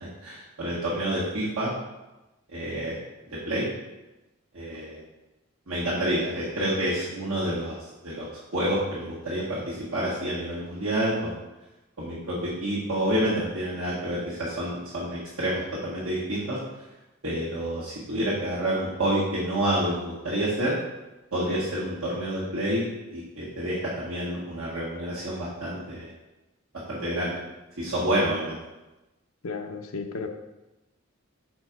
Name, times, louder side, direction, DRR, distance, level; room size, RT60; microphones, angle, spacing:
voice 1, 0.0-1.7 2.5-2.9 3.4-3.7 4.5-5.0 5.7-7.7 8.0-8.3 8.5-11.4 12.0-16.6 17.2-20.8 21.3-26.1 26.9-27.4 27.8-28.6, right 1 dB, 80° right, -9 dB, 1.5 m, -28 dB
voice 2, 29.4-30.3, left 4 dB, 80° left, 4 dB, 0.7 m, -33 dB
4.7 x 4.4 x 5.9 m, 1.0 s
head